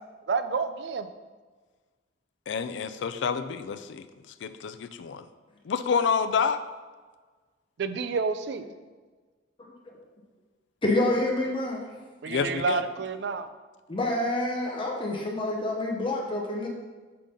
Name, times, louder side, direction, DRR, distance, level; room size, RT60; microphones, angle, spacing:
voice 1, 0.3-1.1 7.8-8.7 12.2-13.5, right 4 dB, 65° right, 10 dB, 0.4 m, -29 dB
voice 2, 2.5-4.0 4.4-5.2 5.6-6.6 12.3-12.8, left 6 dB, 70° left, 11 dB, 0.4 m, -28 dB
voice 3, 10.8-11.8 13.9-16.7, left 1 dB, 25° left, 0 dB, 0.8 m, -27 dB
5.7 x 3.8 x 5.0 m, 1.4 s
head